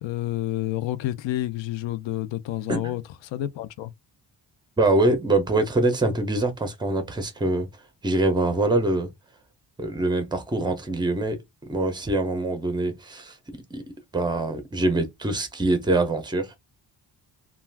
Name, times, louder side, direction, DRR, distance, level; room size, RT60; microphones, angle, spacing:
voice 1, 0.0-3.9, left 14 dB, 80° left, 0.5 m, -29 dB
voice 2, 4.8-7.7 8.0-9.1 9.8-11.4 11.7-13.3 13.7-13.8 14.1-16.5, right 2 dB, 10° right, 0.5 m, -24 dB
2.4 x 2.3 x 3.2 m
wide cardioid pair, 175°, 45 cm